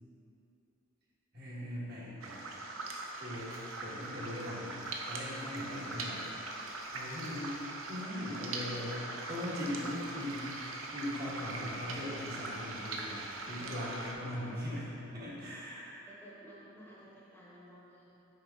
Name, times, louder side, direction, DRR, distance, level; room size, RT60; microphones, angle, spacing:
voice 1, 1.3-2.5 3.2-3.5 3.8-4.8 5.1-6.2 6.9-7.6 7.9-10.5 10.9-16.0, left 1 dB, 50° right, -8 dB, 1.5 m, -40 dB
sound 1, 2.2-14.1, right 2 dB, 90° right, 0.6 m, -41 dB
voice 2, 3.6-4.1 14.3-14.6 16.1-18.2, equal, 10° left, -7 dB, 0.9 m, -54 dB
6.4 x 4.8 x 3.6 m, 3.0 s
head